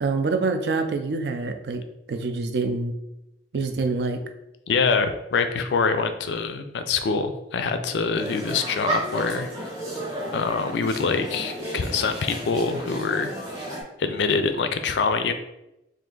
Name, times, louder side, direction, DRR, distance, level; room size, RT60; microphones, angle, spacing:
voice 1, 0.0-2.9 3.5-4.3, right 3 dB, 65° right, 7 dB, 0.4 m, -26 dB
voice 2, 4.7-9.5 10.3-13.3 14.0-15.3, left 4 dB, 75° left, 8 dB, 0.4 m, -25 dB
sound 1, 8.1-13.8, right 1 dB, 20° right, 0.7 m, -33 dB
3.3 x 2.5 x 3.8 m, 0.92 s
head